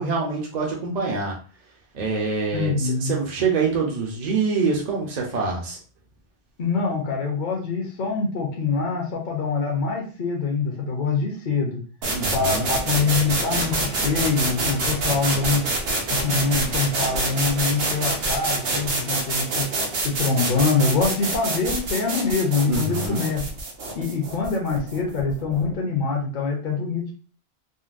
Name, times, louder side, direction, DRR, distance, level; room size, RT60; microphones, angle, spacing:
voice 1, 0.0-1.4 1.9-5.8 12.1-12.7 22.7-23.2, right 4 dB, 45° right, -1 dB, 0.7 m, -25 dB
voice 2, 2.5-3.1 6.6-11.8 12.3-15.6 16.1-19.7 20.0-23.4 23.9-27.1, left 4 dB, 55° left, -1 dB, 0.8 m, -24 dB
sound 1, 12.0-25.7, right 2 dB, 70° right, 1.0 m, -26 dB
3.9 x 2.1 x 2.5 m, 0.39 s
omnidirectional pair, 1.1 m